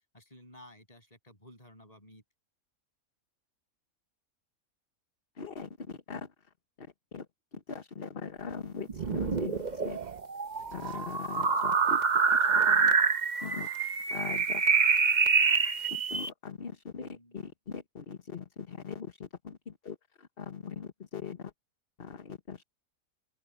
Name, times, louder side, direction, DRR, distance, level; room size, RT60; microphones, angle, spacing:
voice 1, 0.1-2.2 10.6-11.0 17.0-17.4, left 1 dB, 25° left, 7.7 m, -55 dB
voice 2, 5.4-6.3 6.8-6.9 7.1-7.3 7.5-10.0 10.7-12.9 13.4-14.6 15.9-21.5 22.0-22.6, left 6 dB, 45° left, 1.4 m, -41 dB
sound 1, 8.9-16.3, right 5 dB, 35° right, 0.9 m, -26 dB
open air
omnidirectional pair, 1.5 m